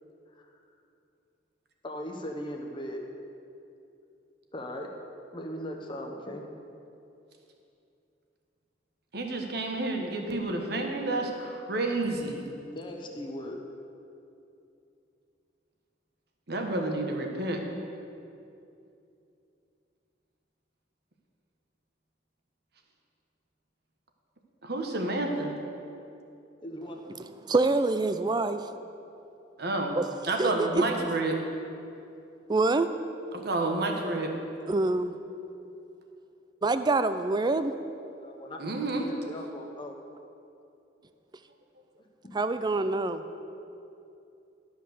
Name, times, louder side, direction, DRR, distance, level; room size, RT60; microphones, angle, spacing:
voice 1, 1.8-3.0 4.5-4.9 5.3-6.4 12.6-13.6 26.6-27.0 38.2-38.6 39.0-39.9 42.0-42.4 42.9-43.0, equal, 25° left, 2 dB, 1.0 m, -38 dB
voice 2, 9.1-12.5 16.5-17.6 24.6-25.5 29.6-30.0 30.2-31.4 33.3-34.3 38.6-39.1, right 2 dB, 60° right, 3 dB, 1.2 m, -30 dB
voice 3, 27.4-28.6 30.0-30.1 30.4-30.8 32.5-32.9 34.7-35.1 36.6-37.7 42.3-43.2, right 3 dB, 25° right, 10 dB, 0.4 m, -25 dB
12.5 x 5.6 x 6.5 m, 2.7 s
head